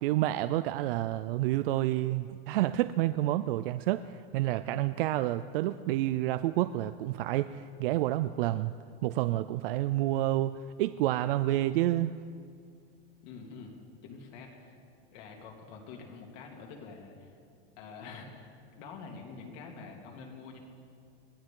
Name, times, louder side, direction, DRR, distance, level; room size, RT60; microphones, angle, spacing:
voice 1, 0.0-8.7 9.0-12.1, right 15 dB, 70° right, 12 dB, 0.5 m, -29 dB
voice 2, 13.2-14.8 15.1-17.4 17.8-20.6, left 4 dB, 50° left, 0 dB, 2.7 m, -47 dB
22.0 x 16.0 x 3.8 m, 2.3 s
supercardioid pair, 180°, 29 cm